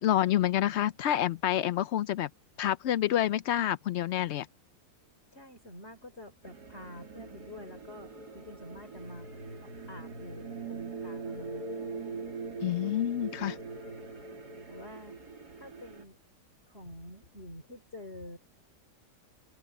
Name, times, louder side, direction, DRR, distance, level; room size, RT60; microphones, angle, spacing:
voice 1, 0.0-2.3 2.6-4.5 12.6-13.6, left 12 dB, 75° left, 0.6 m, -28 dB
voice 2, 5.3-9.3 9.6-11.7 14.7-15.2 15.6-16.2 16.7-18.4, left 1 dB, 40° left, 4.6 m, -47 dB
sound 1, 6.4-16.0, right 4 dB, 75° right, 3.8 m, -42 dB
omnidirectional pair, 1.7 m